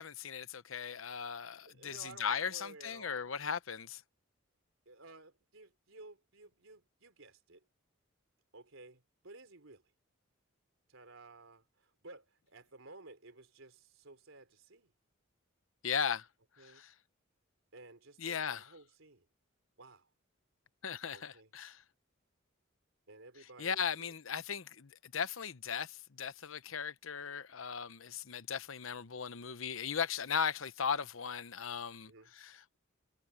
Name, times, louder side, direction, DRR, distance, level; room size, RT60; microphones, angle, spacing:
voice 1, 0.0-4.0 15.8-16.3 16.6-16.9 18.2-18.7 20.8-21.8 23.6-32.8, left 7 dB, 80° left, 0.9 m, -37 dB
voice 2, 1.7-3.3 4.9-7.6 8.5-9.8 10.9-14.9 16.6-16.8 17.7-19.3 19.8-20.1 21.1-21.5 23.1-24.1 32.1-32.3, right 2 dB, 85° right, 3.5 m, -55 dB
head